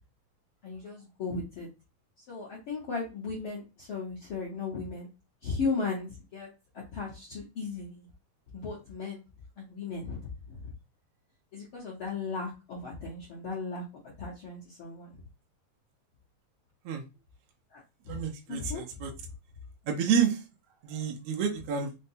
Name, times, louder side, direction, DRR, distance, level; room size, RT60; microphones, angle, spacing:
voice 1, 0.6-1.7 2.2-5.1 5.4-6.5 6.7-8.1 8.5-9.2 9.6-10.7 11.5-13.8 14.2-15.2 17.7-18.2 18.5-19.1, left 4 dB, 60° left, -6 dB, 1.4 m, -36 dB
voice 2, 18.1-19.1 19.9-20.4 20.8-21.9, right 7 dB, 80° right, 1 dB, 1.3 m, -29 dB
5.2 x 2.2 x 2.7 m, 0.27 s
omnidirectional pair, 3.9 m